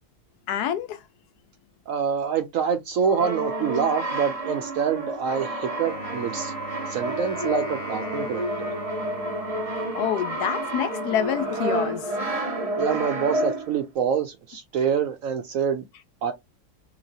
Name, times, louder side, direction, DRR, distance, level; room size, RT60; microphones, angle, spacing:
voice 1, 0.5-1.0 9.9-12.1, left 9 dB, 75° left, 1.0 m, -27 dB
voice 2, 1.9-6.5 6.9-8.7 12.8-15.8 16.2-16.3, right 7 dB, 70° right, 0.8 m, -26 dB
Brass instrument, 3.0-13.8, right 1 dB, 30° right, 0.7 m, -30 dB
Wind instrument woodwind instrument, 5.8-10.1, right 2 dB, 35° left, 1.4 m, -40 dB
3.0 x 2.9 x 2.6 m
omnidirectional pair, 1.8 m